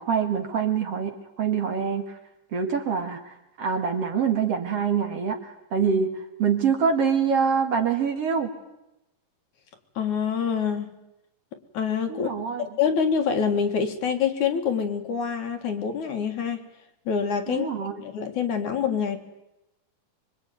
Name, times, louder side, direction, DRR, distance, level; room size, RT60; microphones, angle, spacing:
voice 1, 0.0-2.2 2.5-8.5 12.1-12.7 17.5-18.0, right 6 dB, 50° right, 4 dB, 2.7 m, -25 dB
voice 2, 10.0-10.9 11.7-12.3 12.8-16.6 17.1-17.7 18.0-19.2, left 7 dB, 60° left, 6 dB, 3.1 m, -26 dB
25.5 x 23.5 x 9.4 m, 0.90 s
omnidirectional pair, 4.0 m